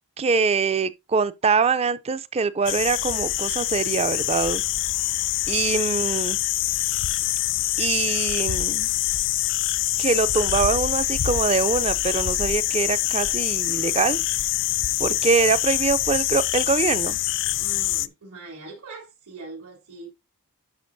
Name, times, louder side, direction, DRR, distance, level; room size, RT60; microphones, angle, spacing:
voice 1, 0.2-4.6 5.5-6.4 7.8-8.9 10.0-14.2 15.0-17.2, right 5 dB, 25° right, 0.4 m, -23 dB
sound 1, 2.7-18.1, left 15 dB, 55° left, 0.4 m, -25 dB
voice 2, 17.6-20.1, right 2 dB, 75° right, 3.0 m, -41 dB
11.5 x 5.2 x 2.6 m
head